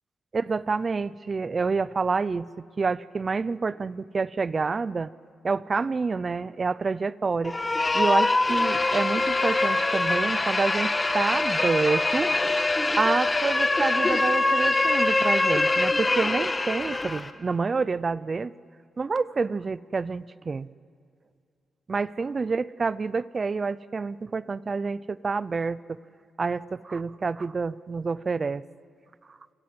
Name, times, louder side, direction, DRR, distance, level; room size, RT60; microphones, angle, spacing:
voice 1, 0.3-5.1 5.4-7.6 7.9-12.3 13.0-18.5 19.0-20.7 21.9-26.0 26.4-28.6, right 4 dB, 40° right, 18 dB, 0.6 m, -28 dB
sound 1, 7.4-17.3, left 2 dB, 25° left, 1.6 m, -24 dB
28.0 x 22.0 x 7.8 m, 2.4 s
cardioid pair, 70°, 0 cm